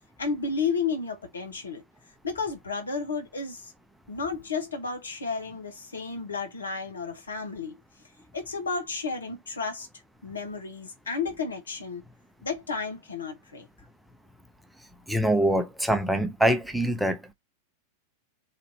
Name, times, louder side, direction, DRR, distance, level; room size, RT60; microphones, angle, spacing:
voice 1, 0.2-1.8 2.2-3.7 4.1-7.8 8.3-9.9 10.2-12.0 12.4-13.7, left 4 dB, 70° left, 1.1 m, -32 dB
voice 2, 15.1-17.3, right 1 dB, ahead, 0.7 m, -24 dB
4.2 x 2.8 x 4.0 m
figure-of-eight pair, 90°, 0 cm